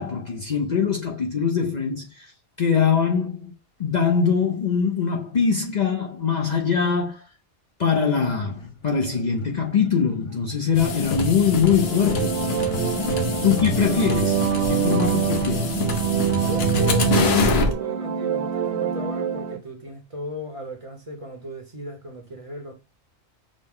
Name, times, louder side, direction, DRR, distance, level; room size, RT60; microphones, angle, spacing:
voice 1, 0.0-2.3 2.6-3.5 3.8-7.2 7.8-12.3 13.4-15.8, left 6 dB, 50° left, 0.6 m, -22 dB
sound 1, 8.1-14.1, left 1 dB, 30° left, 1.0 m, -40 dB
sound 2, 10.7-17.7, left 3 dB, 65° left, 1.0 m, -25 dB
sound 3, 11.7-19.6, right 9 dB, 70° right, 0.9 m, -26 dB
voice 2, 16.3-22.7, equal, 30° right, 0.9 m, -36 dB
6.2 x 2.1 x 3.5 m
omnidirectional pair, 1.2 m